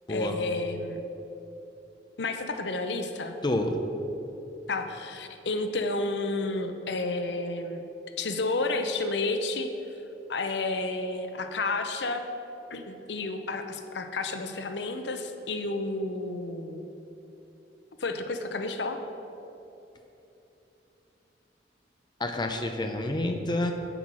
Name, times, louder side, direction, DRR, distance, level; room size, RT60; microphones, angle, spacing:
voice 1, 0.1-1.0 2.2-3.4 4.7-7.9 8.2-9.7 10.3-12.3 12.7-16.9 18.0-19.0, left 2 dB, 75° left, 7 dB, 0.7 m, -31 dB
voice 2, 3.4-3.8 22.2-23.7, left 1 dB, 25° left, 4 dB, 0.7 m, -28 dB
9.1 x 7.9 x 6.2 m, 3.0 s
head